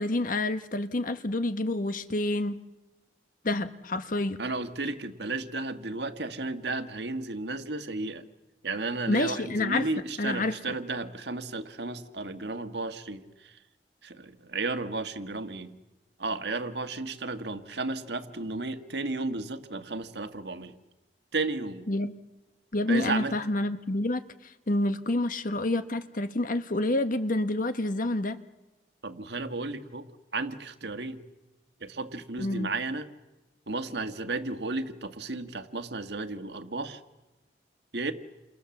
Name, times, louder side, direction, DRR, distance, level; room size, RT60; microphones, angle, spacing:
voice 1, 0.0-2.6 3.4-4.4 9.1-9.9 10.2-10.6 21.9-22.1 22.7-28.4 32.4-32.7, left 2 dB, 50° left, 10 dB, 1.3 m, -28 dB
voice 2, 4.4-8.2 8.6-13.5 14.0-15.7 16.2-20.7 21.3-21.9 22.9-23.3 29.0-31.2 31.8-33.1 33.7-37.0 37.9-38.1, right 3 dB, 70° right, 8 dB, 1.7 m, -33 dB
29.0 x 28.0 x 7.2 m, 1.1 s
head